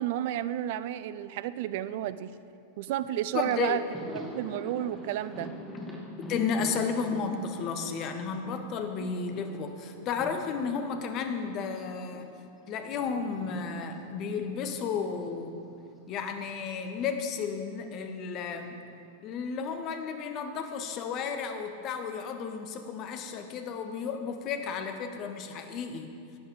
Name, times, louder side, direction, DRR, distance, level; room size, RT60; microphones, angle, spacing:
voice 1, 0.0-2.3 2.8-3.8 4.1-5.5 9.0-9.1, right 12 dB, 50° right, 15 dB, 0.4 m, -31 dB
Thunder, 3.1-3.2 3.5-12.3 12.6-16.9 17.1-17.3 18.5-19.2, equal, 5° left, 1.7 m, -45 dB
voice 2, 3.3-3.8 6.3-12.4 12.7-15.6 16.1-18.8 19.2-26.1, left 5 dB, 35° left, 6 dB, 1.1 m, -33 dB
11.5 x 9.3 x 5.2 m, 2.4 s
figure-of-eight pair, 90°, 0 cm